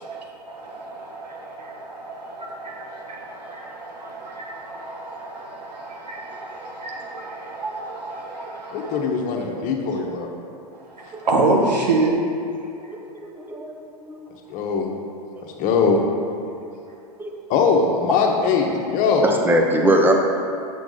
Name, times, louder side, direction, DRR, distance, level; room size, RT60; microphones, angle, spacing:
voice 1, 0.0-9.0 11.0-12.1, right 3 dB, 90° right, -1 dB, 1.5 m, -28 dB
voice 2, 8.7-10.3 14.5-14.9 15.4-16.0 17.5-19.3, left 5 dB, 40° left, 1 dB, 1.2 m, -21 dB
voice 3, 12.8-13.7 14.1-14.2 17.2-17.3 19.2-20.1, right 1 dB, 10° right, 1 dB, 0.9 m, -21 dB
7.6 x 6.0 x 4.0 m, 2.6 s
hypercardioid pair, 110°, 20 cm